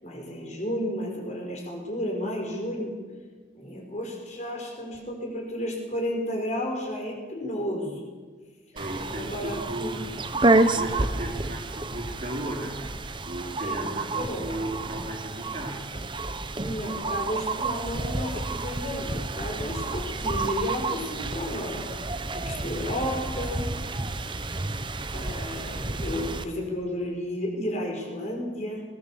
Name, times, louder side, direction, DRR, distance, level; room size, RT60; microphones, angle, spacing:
voice 1, 0.0-2.9 3.5-8.0 9.1-10.0 13.6-14.5 16.6-23.7 25.1-28.8, left 1 dB, 40° left, 1 dB, 4.8 m, -32 dB
voice 2, 8.7-10.2 10.5-12.8 13.2-15.9, right 1 dB, 40° right, 0 dB, 3.9 m, -35 dB
sound 1, 8.8-26.4, right 2 dB, 25° right, 0.9 m, -30 dB
20.0 x 18.5 x 7.4 m, 1.4 s
head